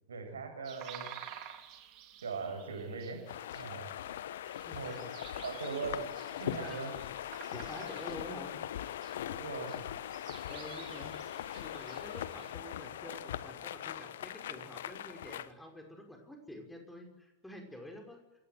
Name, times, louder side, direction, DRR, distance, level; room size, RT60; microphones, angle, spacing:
voice 1, 0.1-1.2 2.2-3.2 3.5-3.9 4.7-5.1 5.4-7.0 9.3-9.8, right 4 dB, 70° right, 5 dB, 6.9 m, -40 dB
sound 1, 0.6-12.5, right 10 dB, 40° right, 3.4 m, -52 dB
sound 2, 3.3-15.5, left 11 dB, 60° left, 1.2 m, -41 dB
voice 2, 4.5-5.0 6.6-6.8 7.5-8.5 10.5-11.1 11.6-18.2, equal, 5° left, 4 dB, 5.6 m, -48 dB
28.0 x 18.0 x 9.5 m, 1.1 s
figure-of-eight pair, 90°, 0 cm